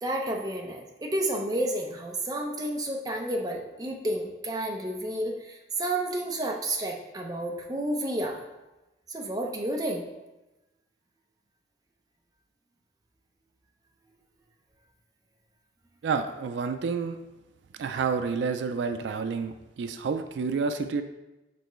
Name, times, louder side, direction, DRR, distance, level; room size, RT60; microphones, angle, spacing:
voice 1, 0.0-8.4 9.1-10.1, right 1 dB, 20° right, 0 dB, 0.6 m, -31 dB
voice 2, 16.0-17.2 17.8-21.0, right 5 dB, 75° right, 8 dB, 0.4 m, -29 dB
6.8 x 4.4 x 3.1 m, 1.0 s
head